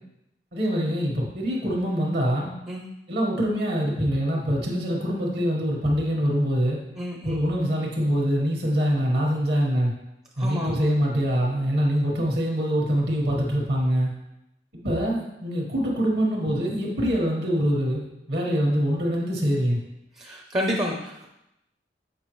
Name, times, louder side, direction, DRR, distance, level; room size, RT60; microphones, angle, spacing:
voice 1, 0.5-2.5 3.1-6.8 7.2-9.9 10.4-14.1 14.7-18.0 18.3-19.8, equal, 60° right, -2 dB, 1.4 m, -24 dB
voice 2, 7.0-7.3 10.4-10.9 20.2-21.3, equal, 25° right, 0 dB, 0.6 m, -29 dB
7.4 x 4.7 x 3.1 m, 0.86 s
head